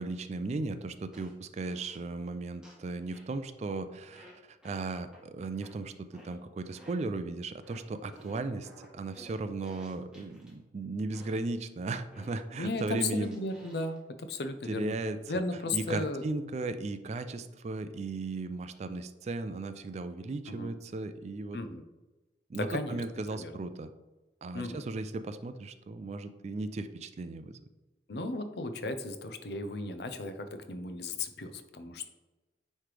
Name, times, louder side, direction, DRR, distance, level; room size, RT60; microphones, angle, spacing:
voice 1, 0.0-13.4 14.7-15.2 15.7-21.6 22.5-23.9 24.4-27.6, right 3 dB, 40° right, 11 dB, 0.3 m, -36 dB
sound 1, 1.1-1.3 1.6-2.0 2.6-2.9 3.1-3.4 4.1-4.3 4.6-4.8 5.1-5.2 5.6-5.8 6.1-6.3 6.6-7.0 7.6-7.8 8.1-10.5 11.1-11.4 12.1-14.0, equal, 5° right, 1.2 m, -55 dB
voice 2, 12.6-14.9 15.3-16.2 20.5-20.7 21.5-21.8 22.5-23.0 23.3-23.5 24.5-24.8 28.1-32.1, left 2 dB, 65° left, 9 dB, 0.6 m, -35 dB
9.5 x 3.2 x 3.3 m, 1.1 s
head